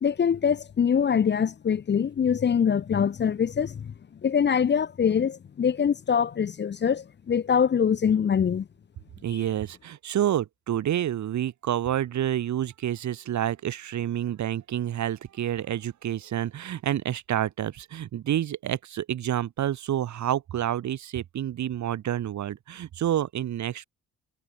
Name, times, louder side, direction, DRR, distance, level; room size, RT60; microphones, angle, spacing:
voice 1, 0.0-3.9 4.2-8.7, left 7 dB, 35° left, 0.8 m, -24 dB
voice 2, 9.2-23.8, right 11 dB, 70° right, 3.5 m, -28 dB
cardioid pair, 90°, 30 cm